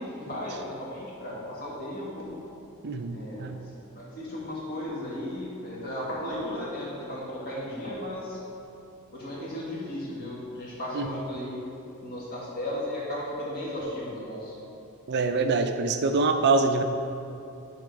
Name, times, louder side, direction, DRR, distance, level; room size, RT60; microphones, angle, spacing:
voice 1, 0.0-2.3 3.1-3.5 3.9-8.4 9.1-11.6 12.0-14.5, left 1 dB, 45° left, -6 dB, 1.8 m, -35 dB
voice 2, 2.8-3.6 10.9-11.1 15.1-16.8, right 3 dB, 50° right, 7 dB, 0.5 m, -25 dB
9.9 x 3.6 x 5.2 m, 2.8 s
head